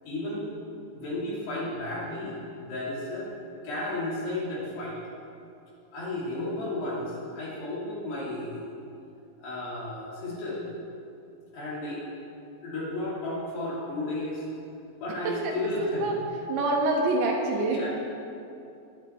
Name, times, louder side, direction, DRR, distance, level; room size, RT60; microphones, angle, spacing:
voice 1, 0.0-0.5 0.9-3.3 3.6-5.0 5.9-8.7 9.4-10.6 11.5-12.0 12.6-14.4 15.0-16.1 17.7-17.9, left 2 dB, 60° left, -6 dB, 5.0 m, -33 dB
voice 2, 15.2-16.1 16.5-17.9, right 2 dB, 70° right, -1 dB, 3.3 m, -26 dB
21.5 x 9.7 x 4.6 m, 2.7 s
omnidirectional pair, 5.9 m